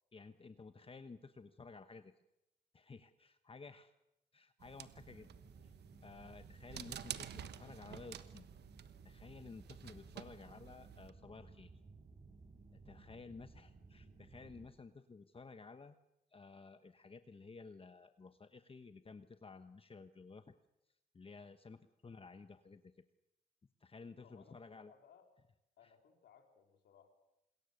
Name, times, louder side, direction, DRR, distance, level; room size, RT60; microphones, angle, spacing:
voice 1, 0.1-2.1 2.7-3.9 4.3-5.3 5.6-5.7 6.0-8.5 9.0-11.7 12.7-15.9 16.3-20.5 21.1-22.9 23.8-24.9, left 4 dB, 35° left, 9 dB, 1.2 m, -54 dB
sound 1, 4.6-11.1, right 10 dB, 80° right, 1.2 m, -51 dB
sound 2, 5.0-14.7, right 3 dB, 45° right, 5.1 m, -59 dB
voice 2, 24.2-25.3 25.8-27.1, left 7 dB, 85° left, 4 dB, 3.6 m, -64 dB
27.0 x 21.5 x 6.7 m, 0.90 s
cardioid pair, 75°, 17 cm